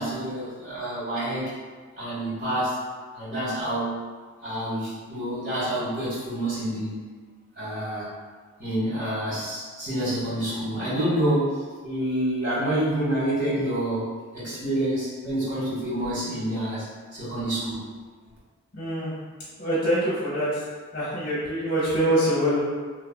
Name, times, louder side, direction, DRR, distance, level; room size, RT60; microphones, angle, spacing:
voice 1, 0.0-1.5 2.0-2.8 3.1-3.9 4.4-6.9 7.5-8.0 8.6-14.1 14.3-17.8, right 1 dB, 40° right, -11 dB, 1.5 m, -28 dB
voice 2, 18.7-19.1 19.6-20.5 20.9-22.6, equal, 50° left, -8 dB, 0.7 m, -24 dB
3.1 x 2.4 x 2.2 m, 1.5 s
head